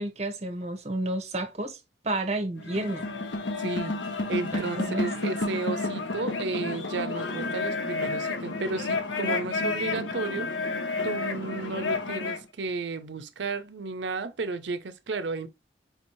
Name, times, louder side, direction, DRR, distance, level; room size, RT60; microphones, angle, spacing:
voice 1, 0.0-3.1 4.5-5.1, right 2 dB, 35° right, 0.8 m, -31 dB
sound 1, 2.6-12.4, left 3 dB, 90° left, 0.7 m, -31 dB
voice 2, 3.6-4.0 4.3-10.5 11.0-15.5, right 3 dB, 75° right, 0.6 m, -33 dB
5.0 x 2.7 x 3.0 m
head